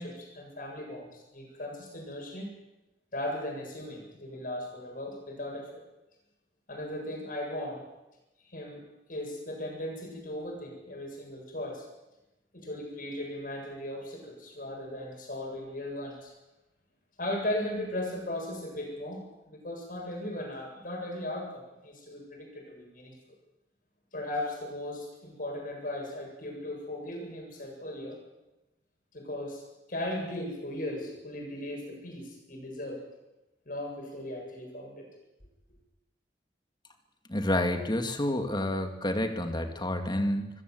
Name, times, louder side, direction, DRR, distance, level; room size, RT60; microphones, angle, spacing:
voice 1, 0.0-2.5 3.1-5.8 6.7-7.8 8.4-8.8 9.1-11.9 12.5-16.3 17.2-23.1 24.1-28.2 29.1-29.6 29.9-33.0 33.7-35.1, left 1 dB, 50° left, 1 dB, 7.8 m, -37 dB
voice 2, 37.3-40.5, left 1 dB, 25° left, 6 dB, 2.3 m, -29 dB
26.0 x 15.0 x 8.0 m, 0.98 s
head